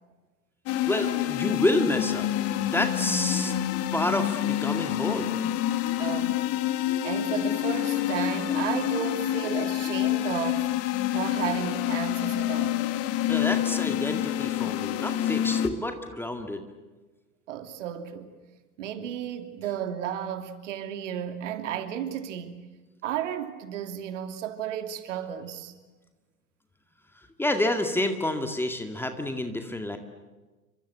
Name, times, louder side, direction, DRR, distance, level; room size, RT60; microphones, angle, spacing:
sound 1, 0.7-15.7, left 12 dB, 30° left, 2.0 m, -27 dB
voice 1, 0.9-3.5 3.9-5.4 13.3-16.6 27.4-30.0, left 1 dB, 5° left, 2.0 m, -29 dB
voice 2, 6.0-6.4 7.0-10.7 11.1-12.8 17.5-18.3 18.8-22.7 23.0-25.7, right 9 dB, 50° right, 2.9 m, -33 dB
29.5 x 25.0 x 8.1 m
figure-of-eight pair, 100°, 45 cm